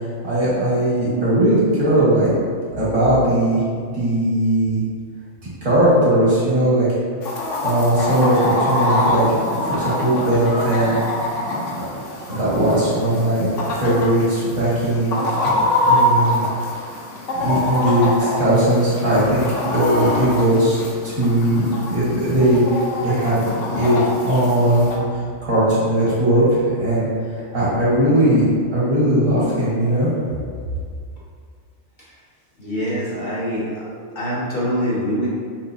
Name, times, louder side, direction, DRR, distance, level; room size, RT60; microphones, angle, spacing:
voice 1, 0.2-2.3 2.8-3.6 3.9-4.8 5.6-6.9 7.6-9.2 9.7-11.0 11.8-11.9 12.3-13.5 13.8-15.2 15.4-15.5 15.9-16.4 17.3-19.4 19.7-22.6 23.0-23.4 23.7-24.0 24.2-27.1 27.5-30.1, right 1 dB, 70° right, -9 dB, 2.0 m, -18 dB
Chicken rooster, 7.2-25.0, left 1 dB, 70° left, 1.1 m, -24 dB
voice 2, 32.6-33.9 34.1-35.3, equal, 45° left, -8 dB, 0.8 m, -24 dB
5.5 x 2.8 x 2.7 m, 2.1 s
omnidirectional pair, 1.4 m